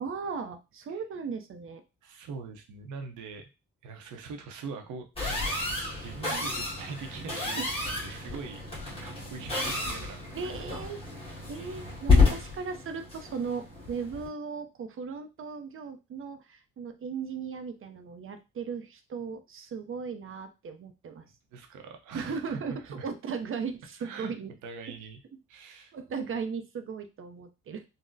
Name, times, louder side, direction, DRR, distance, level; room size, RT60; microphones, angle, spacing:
voice 1, 0.0-1.8 6.3-6.5 7.6-7.7 8.1-8.2 10.3-11.0 11.5-21.3 22.1-22.7 23.0-24.5 25.9-27.8, right 5 dB, 45° right, 8 dB, 0.5 m, -37 dB
voice 2, 2.0-3.5 3.8-5.6 6.0-8.6 9.0-10.9 21.5-23.1 24.0-24.3 24.6-25.2 25.5-25.9, right 4 dB, 85° right, 5 dB, 0.7 m, -42 dB
sound 1, 5.2-14.3, left 3 dB, 20° left, 1.4 m, -30 dB
3.8 x 2.0 x 2.6 m, 0.27 s
cardioid pair, 90°, 30 cm